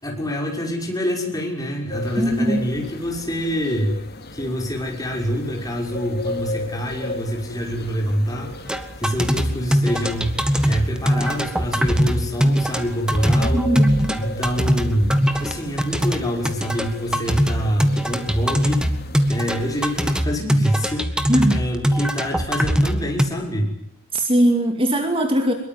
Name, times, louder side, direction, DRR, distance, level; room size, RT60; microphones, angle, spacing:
voice 1, 0.0-3.9 4.3-8.5 9.0-13.6 14.2-18.9 19.3-23.7, equal, 15° left, 1 dB, 6.1 m, -26 dB
sound 1, 1.9-20.2, left 2 dB, 45° left, 2.5 m, -36 dB
voice 2, 2.2-2.8 13.4-14.2 21.3-21.6 24.1-25.5, right 1 dB, 25° right, 5 dB, 2.4 m, -20 dB
sound 2, 8.7-23.3, equal, 5° right, 1.7 m, -21 dB
24.0 x 22.5 x 9.6 m, 0.73 s
head